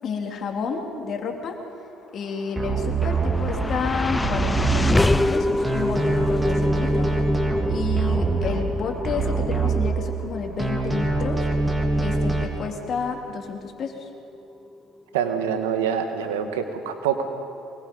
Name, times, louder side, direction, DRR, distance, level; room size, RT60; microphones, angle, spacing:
voice 1, 0.0-1.6 2.1-7.1 7.7-11.5 12.0-14.1 16.4-16.5, left 5 dB, 55° left, 2 dB, 3.3 m, -31 dB
sound 1, 2.4-14.7, left 2 dB, 15° left, 0.7 m, -28 dB
sound 2, 2.6-5.3 5.6-10.3 10.6-12.4, right 3 dB, 20° right, 3.4 m, -24 dB
voice 2, 15.1-17.2, right 8 dB, 90° right, 6 dB, 1.7 m, -25 dB
24.0 x 20.5 x 5.5 m, 2.7 s
hypercardioid pair, 65°, 0 cm